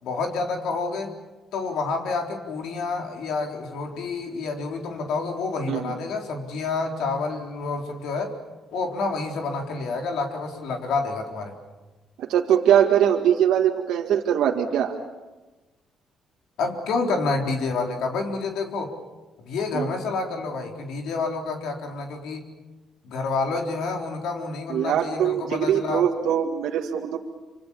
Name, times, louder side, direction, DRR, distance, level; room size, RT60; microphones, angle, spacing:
voice 1, 0.0-1.1 1.5-8.3 8.7-11.6 16.6-18.9 19.4-22.5 23.0-26.1, left 3 dB, 85° left, 3 dB, 3.9 m, -28 dB
voice 2, 12.2-15.0 19.7-19.8 24.7-27.2, right 9 dB, 85° right, 2 dB, 1.9 m, -22 dB
26.5 x 25.5 x 7.3 m, 1.2 s
cardioid pair, 90°, 0 cm